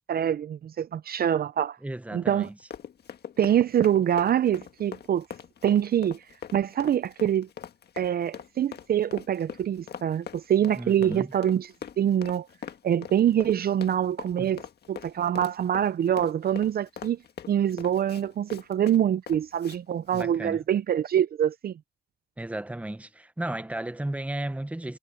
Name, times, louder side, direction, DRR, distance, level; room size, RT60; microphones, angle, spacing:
voice 1, 0.1-1.8 2.1-2.5 3.4-5.3 5.6-6.2 6.5-7.5 8.0-11.7 12.0-12.5 12.8-14.6 14.9-17.2 17.5-21.8, right 10 dB, 50° right, 0.6 m, -25 dB
voice 2, 1.8-2.6 10.7-11.3 14.4-14.5 20.1-20.6 22.4-25.0, right 1 dB, 5° right, 1.0 m, -34 dB
Run, 2.4-19.8 20.1-20.3, left 8 dB, 55° left, 1.6 m, -42 dB
cardioid pair, 90°, 20 cm